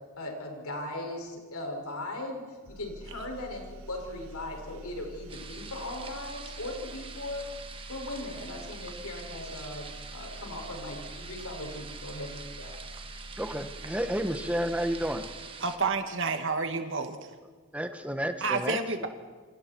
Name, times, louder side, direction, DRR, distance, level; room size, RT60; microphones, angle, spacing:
voice 1, 0.2-7.4 7.9-12.8, left 1 dB, 80° left, 1 dB, 6.5 m, -38 dB
sound 1, 2.6-16.0, right 1 dB, 75° right, 1.7 m, -46 dB
sound 2, 5.3-15.8, right 5 dB, 25° right, 1.6 m, -45 dB
voice 2, 13.4-15.2 17.7-19.1, equal, 5° right, 7 dB, 1.3 m, -31 dB
voice 3, 15.6-17.2 18.4-19.1, right 4 dB, 55° right, 5 dB, 2.4 m, -29 dB
29.0 x 27.5 x 4.7 m, 1.5 s
head